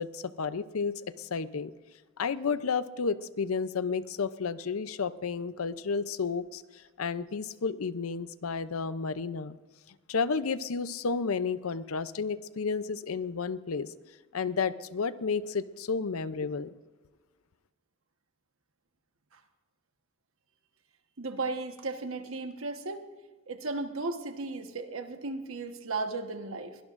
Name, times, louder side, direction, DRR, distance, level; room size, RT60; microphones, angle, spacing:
voice 1, 0.0-1.7 2.2-9.6 10.1-13.9 14.3-16.7, left 5 dB, 85° left, 14 dB, 0.6 m, -32 dB
voice 2, 21.2-23.1 23.5-26.8, right 3 dB, 70° right, 6 dB, 1.3 m, -35 dB
23.0 x 18.0 x 2.6 m, 1.2 s
head